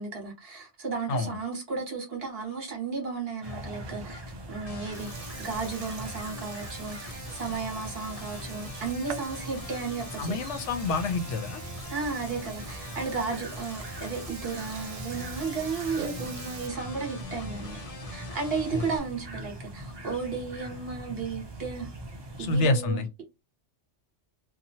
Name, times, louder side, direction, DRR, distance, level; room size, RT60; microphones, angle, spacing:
voice 1, 0.0-4.2 4.5-10.4 11.9-17.8 18.1-21.9 22.4-23.2, right 4 dB, 55° right, 1.3 m, -34 dB
sound 1, 3.4-22.6, equal, 30° right, 0.5 m, -42 dB
Burping eructation, 3.5-16.7, right 8 dB, 80° right, 0.9 m, -45 dB
sound 2, 4.7-19.0, left 2 dB, 40° left, 0.6 m, -44 dB
voice 2, 10.2-11.6 18.7-18.8 22.4-23.1, left 3 dB, 75° left, 0.9 m, -27 dB
2.7 x 2.3 x 2.7 m
omnidirectional pair, 1.3 m